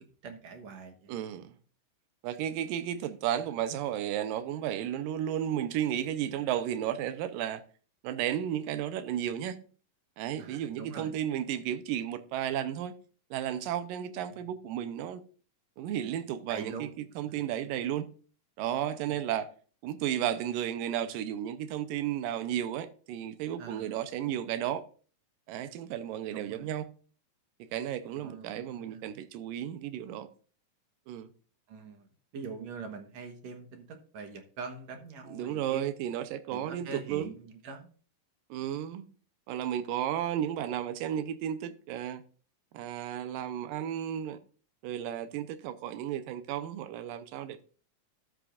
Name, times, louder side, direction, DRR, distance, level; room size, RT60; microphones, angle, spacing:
voice 1, 0.2-1.1 10.4-11.1 14.3-14.4 16.5-16.9 17.2-17.4 23.6-24.0 26.3-26.7 28.2-29.1 31.7-32.1 32.3-35.8 36.5-37.9, right 4 dB, 60° right, 2.1 m, -43 dB
voice 2, 1.1-1.6 2.2-7.6 8.0-9.6 10.2-12.9 13.3-15.2 15.8-18.1 18.6-19.5 19.8-24.8 25.5-26.9 27.6-30.3 31.1-31.3 35.3-37.3 38.5-39.1 39.5-42.2 42.7-44.4 44.8-47.6, right 10 dB, 80° right, 2.4 m, -33 dB
13.0 x 8.4 x 2.5 m
omnidirectional pair, 4.0 m